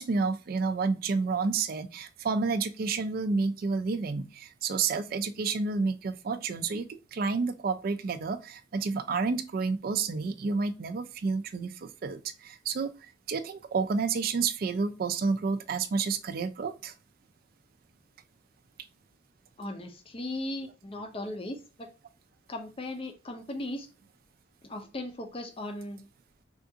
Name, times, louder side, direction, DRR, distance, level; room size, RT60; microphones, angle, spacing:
voice 1, 0.0-12.9 13.3-16.9, right 4 dB, 50° right, 0.3 m, -30 dB
voice 2, 19.6-21.9 22.5-23.9 24.6-26.0, left 1 dB, 30° left, 0.5 m, -37 dB
3.5 x 2.4 x 2.7 m
head